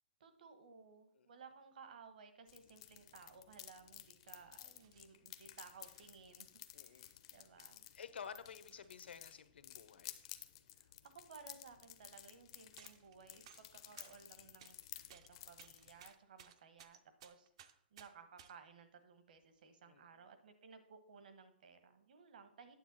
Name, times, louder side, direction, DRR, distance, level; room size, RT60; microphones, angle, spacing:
voice 1, 0.2-6.5 6.8-7.9 10.7-14.8 15.1-17.5 17.9-22.7, right 5 dB, 55° right, 9 dB, 1.1 m, -59 dB
sound 1, 2.5-16.1, left 13 dB, 30° left, 0.5 m, -55 dB
sound 2, 3.1-3.2 3.9-4.1 4.7-5.2 5.8-6.2 7.0-7.1 7.6-7.7 8.1-9.4 10.9-11.0 11.2-11.4 12.8-13.2 13.4-14.8 15.1-18.6 19.4-19.6, right 9 dB, 30° right, 0.4 m, -62 dB
voice 2, 6.7-7.1 7.9-10.2 19.8-20.3, left 7 dB, 85° left, 12 dB, 0.8 m, -52 dB
9.2 x 7.5 x 4.1 m, 0.67 s
hypercardioid pair, 180°, 6 cm